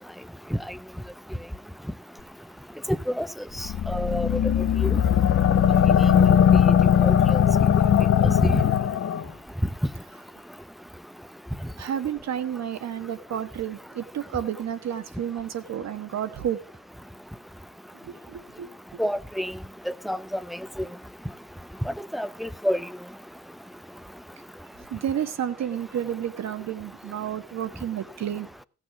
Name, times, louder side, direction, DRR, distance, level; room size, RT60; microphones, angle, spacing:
sound 1, 3.6-9.2, left 9 dB, 50° left, 0.8 m, -19 dB
voice 1, 3.6-4.3 4.8-5.0 5.9-6.4 6.7-7.4 7.8-7.9 8.2-8.7 19.0-19.5 19.9-20.2 21.9-22.8, equal, ahead, 0.5 m, -28 dB
voice 2, 11.8-16.6 18.0-18.7 24.9-28.5, right 9 dB, 60° right, 1.4 m, -31 dB
15.5 x 6.3 x 5.9 m
cardioid pair, 90°, 30 cm